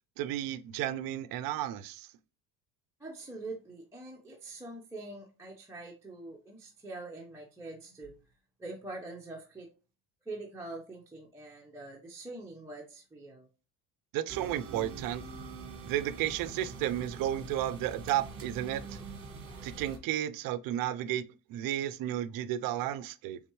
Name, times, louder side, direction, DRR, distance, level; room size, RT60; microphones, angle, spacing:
voice 1, 0.2-2.1 14.1-15.3 15.9-19.0 19.6-23.4, right 12 dB, 55° right, 0.5 m, -33 dB
voice 2, 3.0-8.1 8.6-9.7 10.3-13.5, right 2 dB, 5° right, 0.8 m, -44 dB
sound 1, 14.3-20.0, right 4 dB, 35° right, 1.3 m, -44 dB
4.3 x 3.6 x 3.0 m
cardioid pair, 125°, 41 cm